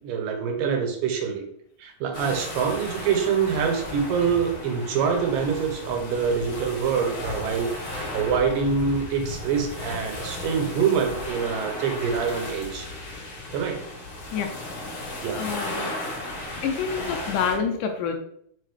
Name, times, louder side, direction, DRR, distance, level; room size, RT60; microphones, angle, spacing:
voice 1, 0.0-1.4 1.8-12.9 13.5-13.8 15.2-15.4, right 6 dB, 75° right, 3 dB, 2.6 m, -25 dB
sound 1, 2.1-17.6, left 1 dB, 60° left, 2.8 m, -35 dB
voice 2, 15.3-16.0 16.6-18.1, left 6 dB, 80° left, 5 dB, 2.1 m, -27 dB
6.7 x 4.9 x 3.2 m, 0.69 s
omnidirectional pair, 4.0 m